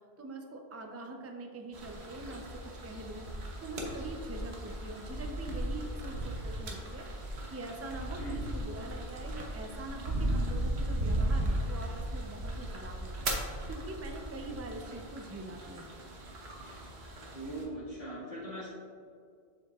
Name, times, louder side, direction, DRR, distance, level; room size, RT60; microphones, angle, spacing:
voice 1, 0.2-3.2 3.6-16.0, right 2 dB, 20° right, 3 dB, 0.5 m, -44 dB
sound 1, 1.7-17.6, right 1 dB, 75° right, 1.3 m, -36 dB
sound 2, 2.3-13.6 13.9-14.0, left 2 dB, 40° left, 0.7 m, -55 dB
voice 2, 17.3-18.7, right 1 dB, 70° left, -9 dB, 2.2 m, -40 dB
7.5 x 7.5 x 2.4 m, 2.2 s
omnidirectional pair, 1.1 m